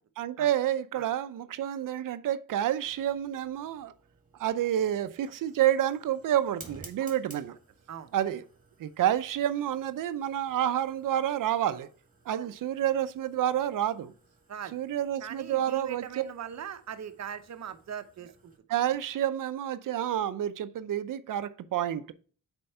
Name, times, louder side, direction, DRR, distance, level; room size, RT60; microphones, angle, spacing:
voice 1, 0.2-3.9 4.4-7.5 8.1-8.4 8.8-11.9 12.3-14.1 14.7-16.2 18.7-22.1, right 11 dB, 90° right, 0.6 m, -29 dB
Fire, 2.9-18.6, right 3 dB, 25° right, 2.0 m, -56 dB
voice 2, 15.2-18.5, right 9 dB, 60° right, 0.8 m, -40 dB
7.8 x 4.5 x 4.3 m
wide cardioid pair, 135°, 31 cm